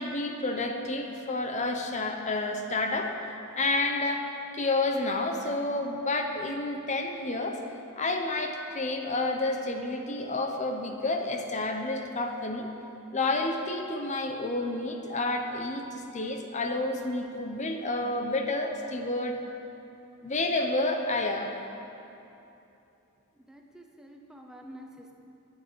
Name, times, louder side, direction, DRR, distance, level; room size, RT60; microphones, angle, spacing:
voice 1, 0.0-3.2 3.6-4.3 4.5-7.6 8.0-12.7 13.1-19.4 20.2-21.6, left 2 dB, 35° left, 4 dB, 0.8 m, -30 dB
voice 2, 23.3-25.1, equal, 5° right, 1 dB, 0.8 m, -48 dB
10.0 x 9.2 x 8.4 m, 2.9 s
head